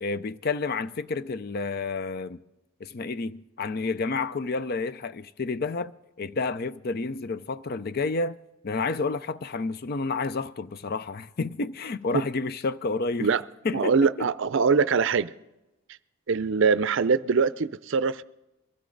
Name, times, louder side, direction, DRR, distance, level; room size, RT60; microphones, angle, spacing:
voice 1, 0.0-2.4 2.8-5.9 6.2-8.4 8.6-13.3 13.6-14.3, left 3 dB, 45° left, 0.5 m, -30 dB
voice 2, 13.7-15.3 16.3-18.2, right 5 dB, 60° right, 0.5 m, -23 dB
23.0 x 15.5 x 3.9 m
head